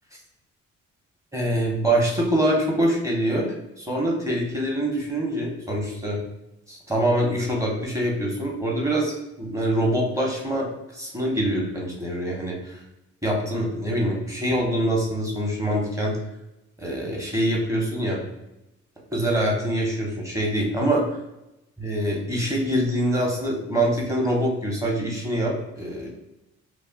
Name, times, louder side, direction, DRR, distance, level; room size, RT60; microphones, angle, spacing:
voice 1, 1.3-3.5 3.8-6.2 6.7-10.7 10.9-12.8 13.2-16.2 16.8-18.2 19.1-21.1 21.8-26.1, right 1 dB, 10° right, -2 dB, 0.8 m, -24 dB
2.4 x 2.1 x 3.5 m, 0.92 s
cardioid pair, 90°, 30 cm